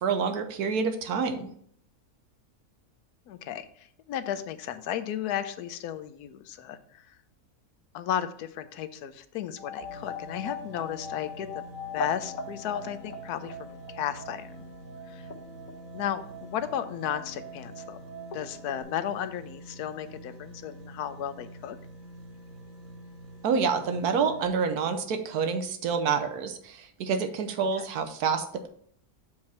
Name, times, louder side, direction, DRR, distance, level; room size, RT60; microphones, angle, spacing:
voice 1, 0.0-1.5 23.4-28.7, right 5 dB, 85° right, 7 dB, 1.3 m, -28 dB
voice 2, 3.3-7.2 7.9-11.6 11.9-14.5 15.1-15.3 15.9-18.0 18.3-21.8 27.8-27.9, left 10 dB, 85° left, 12 dB, 1.2 m, -34 dB
sound 1, 9.6-18.8, left 3 dB, 70° left, 1.3 m, -41 dB
sound 2, 9.8-24.5, right 1 dB, 55° right, 1.3 m, -47 dB
7.0 x 4.9 x 4.2 m, 0.63 s
omnidirectional pair, 1.6 m